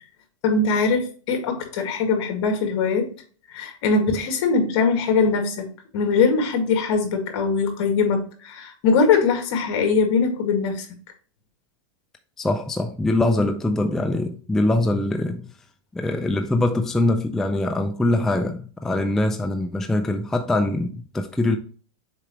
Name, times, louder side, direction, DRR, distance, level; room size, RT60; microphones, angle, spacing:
voice 1, 0.4-3.1 3.5-5.7 5.9-10.9, left 4 dB, 55° left, 2.0 m, -21 dB
voice 2, 12.4-15.5 15.9-21.6, left 2 dB, 5° left, 0.3 m, -23 dB
6.7 x 4.8 x 3.0 m
supercardioid pair, 145°, 16 cm